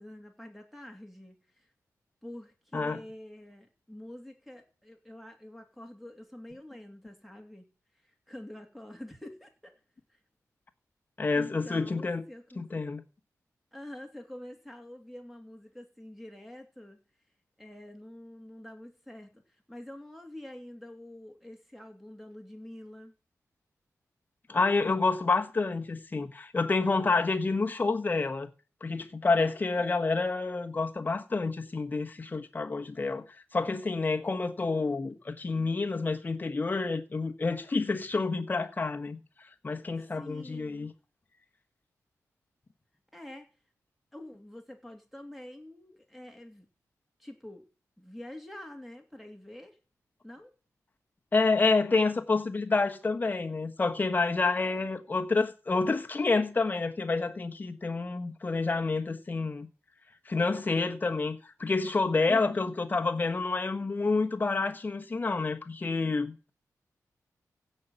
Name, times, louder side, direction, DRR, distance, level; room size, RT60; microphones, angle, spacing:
voice 1, 0.0-1.7 2.2-7.6 8.0-9.7 10.1-10.2 11.3-12.7 13.7-17.0 17.6-23.1 29.4-29.9 40.2-40.9 43.1-43.5 44.1-46.7 47.2-47.6 48.0-49.8 50.2-50.5 62.3-62.7, left 1 dB, ahead, 2.8 m, -46 dB
voice 2, 11.2-12.2 12.6-13.0 24.5-28.5 28.8-33.2 33.5-39.2 39.6-40.9 51.3-59.7 60.3-66.5, left 3 dB, 30° left, 1.3 m, -28 dB
16.0 x 5.6 x 7.1 m
wide cardioid pair, 120°, 6 cm